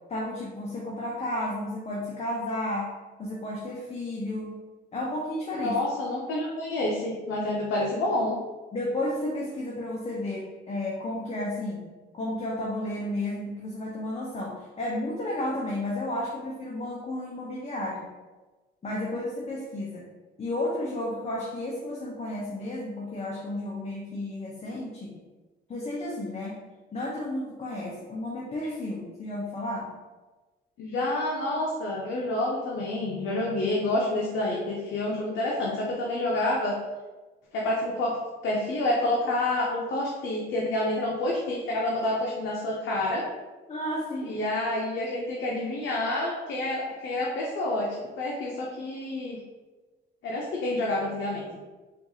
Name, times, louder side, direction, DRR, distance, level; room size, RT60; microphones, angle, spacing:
voice 1, 0.1-2.9 3.2-4.5 4.9-5.8 8.7-11.9 12.1-18.1 18.8-20.1 20.4-25.2 25.7-26.6 26.9-29.9 43.7-44.4, left 1 dB, 30° left, -4 dB, 0.6 m, -32 dB
voice 2, 5.5-8.4 30.8-36.7 37.5-38.2 38.4-43.2 44.2-49.4 50.2-51.4, left 1 dB, 70° left, -3 dB, 0.6 m, -28 dB
4.4 x 2.4 x 2.7 m, 1.2 s
cardioid pair, 90°, 20 cm